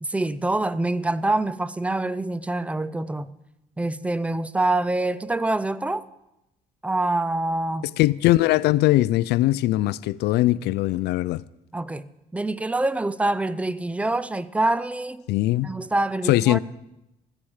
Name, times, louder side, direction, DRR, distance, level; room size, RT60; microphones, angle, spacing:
voice 1, 0.0-3.3 3.8-6.0 6.8-7.9 11.7-12.1 12.3-15.2 15.6-16.6, right 2 dB, 10° right, 0.5 m, -25 dB
voice 2, 8.0-11.4 15.3-15.7 16.3-16.6, left 16 dB, 80° left, 0.4 m, -20 dB
16.0 x 13.0 x 4.9 m
cardioid pair, 110°, 17 cm